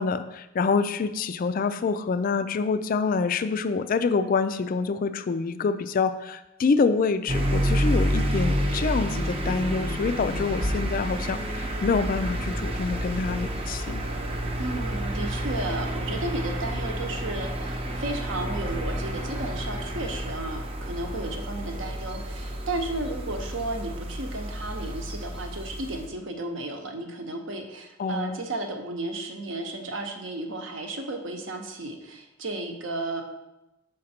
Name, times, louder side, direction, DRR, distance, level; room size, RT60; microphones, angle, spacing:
voice 1, 0.0-14.0 28.0-28.4, left 4 dB, 40° left, 11 dB, 0.3 m, -26 dB
sound 1, 7.3-26.1, equal, 25° right, 0.6 m, -29 dB
voice 2, 14.6-33.2, right 2 dB, 60° right, 4 dB, 0.9 m, -33 dB
6.5 x 5.1 x 4.3 m, 0.96 s
head